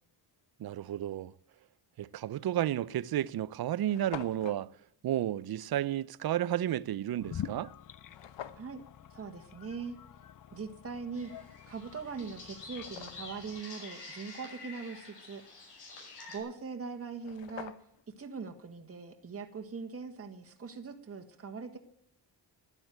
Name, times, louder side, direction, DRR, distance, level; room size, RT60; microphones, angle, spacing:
voice 1, 0.6-1.3 2.0-4.7 5.0-7.7, right 12 dB, 55° right, 0.6 m, -32 dB
sound 1, 2.3-2.5 3.2-3.3 3.4-3.5 3.7-4.6 8.1-8.7 11.6-11.7 12.3-13.4 16.8-16.9 17.1-18.1, left 10 dB, 80° left, 1.1 m, -46 dB
sound 2, 7.2-13.6, left 9 dB, 45° left, 0.6 m, -47 dB
voice 2, 9.1-10.0 10.5-11.3 11.7-15.4 16.3-17.7 18.2-21.8, right 5 dB, 30° right, 1.6 m, -41 dB
sound 3, 11.1-16.4, left 3 dB, 65° left, 6.4 m, -48 dB
12.5 x 11.0 x 9.3 m
wide cardioid pair, 125°, 44 cm